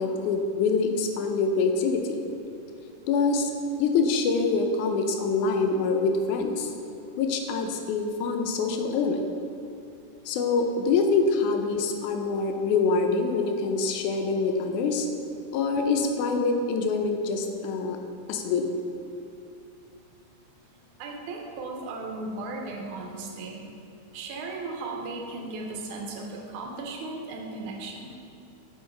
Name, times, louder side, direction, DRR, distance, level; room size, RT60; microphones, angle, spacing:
voice 1, 0.0-2.2 3.1-3.5 3.8-6.7 7.2-9.3 10.3-15.1 15.5-18.0 18.3-18.7, left 4 dB, 85° left, 4 dB, 2.0 m, -25 dB
voice 2, 21.0-23.6 24.1-28.2, right 3 dB, 80° right, 0 dB, 2.1 m, -36 dB
5.4 x 5.1 x 4.4 m, 2.8 s
omnidirectional pair, 3.5 m